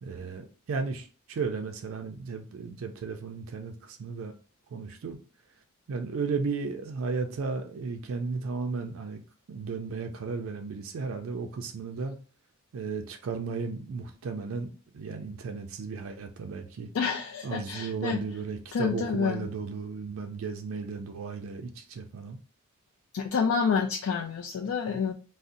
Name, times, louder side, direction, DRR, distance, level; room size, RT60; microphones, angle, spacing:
voice 1, 0.0-4.3 4.7-5.2 5.9-9.2 9.5-12.2 12.7-16.9 17.4-22.4, right 4 dB, 70° right, 0.4 m, -34 dB
voice 2, 16.9-18.4 18.7-19.5 23.1-25.1, left 5 dB, 70° left, 0.3 m, -28 dB
2.5 x 2.0 x 3.7 m
head